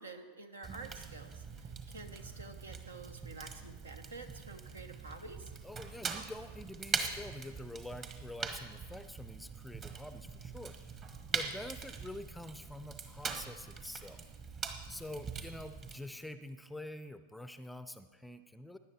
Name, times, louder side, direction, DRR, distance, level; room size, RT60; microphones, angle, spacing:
voice 1, 0.0-5.5, right 3 dB, 70° right, 8 dB, 1.0 m, -49 dB
Fire, 0.6-16.0, right 5 dB, 30° right, 1.2 m, -42 dB
voice 2, 5.6-14.2 14.6-18.8, left 1 dB, 5° left, 11 dB, 0.5 m, -47 dB
17.0 x 10.5 x 4.4 m, 1.4 s
figure-of-eight pair, 90°, 0 cm